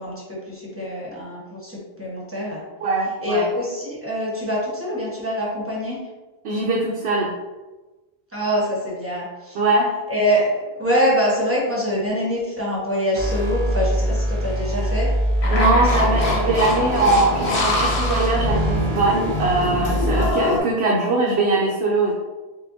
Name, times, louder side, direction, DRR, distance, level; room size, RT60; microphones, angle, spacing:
voice 1, 0.0-2.6 3.2-6.0 8.3-9.6 10.1-15.1 15.4-16.1, equal, 15° right, -6 dB, 1.0 m, -24 dB
voice 2, 2.8-3.5 6.4-7.3 9.5-9.9 15.5-22.1, right 2 dB, 85° right, -3 dB, 0.9 m, -21 dB
sound 1, 13.2-20.3, right 1 dB, 50° right, 0.4 m, -24 dB
sound 2, 15.4-20.6, left 2 dB, 40° left, 0.8 m, -24 dB
6.3 x 2.2 x 2.6 m, 1.2 s
omnidirectional pair, 1.0 m